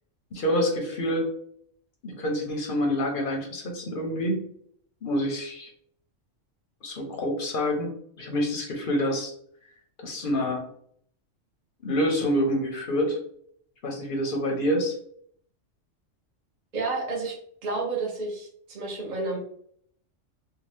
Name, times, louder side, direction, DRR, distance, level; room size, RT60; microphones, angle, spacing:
voice 1, 0.3-1.3 2.0-4.4 5.0-5.7 6.8-9.3 10.0-10.6 11.8-13.2 13.8-14.9, equal, 55° left, 1 dB, 0.7 m, -27 dB
voice 2, 16.7-17.4 17.6-19.4, right 3 dB, 45° right, -1 dB, 0.6 m, -30 dB
2.8 x 2.2 x 3.1 m, 0.64 s
omnidirectional pair, 1.3 m